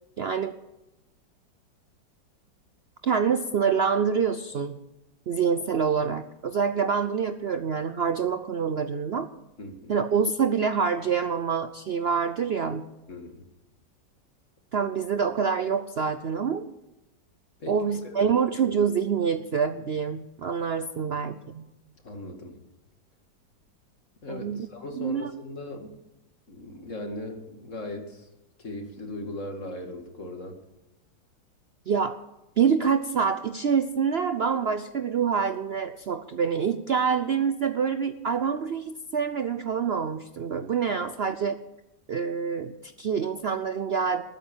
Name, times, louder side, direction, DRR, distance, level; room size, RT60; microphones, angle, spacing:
voice 1, 0.2-0.6 3.0-4.8 5.3-9.3 9.9-12.8 14.7-16.6 17.7-21.6 24.3-24.7 24.9-25.3 31.9-32.2 32.6-41.6 42.1-44.2, right 6 dB, 85° right, 10 dB, 0.5 m, -26 dB
voice 2, 9.6-9.9 13.1-13.4 17.6-18.4 21.1-21.2 22.0-22.6 24.2-26.0 26.5-28.3 28.6-30.6 40.9-41.0, left 1 dB, 40° left, 4 dB, 2.4 m, -38 dB
20.5 x 9.2 x 7.3 m, 0.97 s
omnidirectional pair, 2.0 m